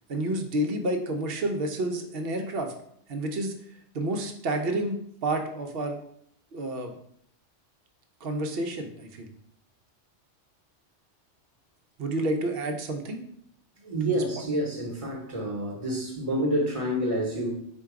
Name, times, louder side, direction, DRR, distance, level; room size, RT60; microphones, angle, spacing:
voice 1, 0.1-2.7 3.1-3.5 3.9-6.0 6.5-6.9 8.2-9.3 12.0-13.2 14.2-14.3, right 1 dB, 60° right, 5 dB, 0.8 m, -29 dB
voice 2, 13.8-17.5, right 1 dB, 30° right, -1 dB, 0.9 m, -28 dB
4.4 x 2.3 x 4.6 m, 0.69 s
omnidirectional pair, 1.3 m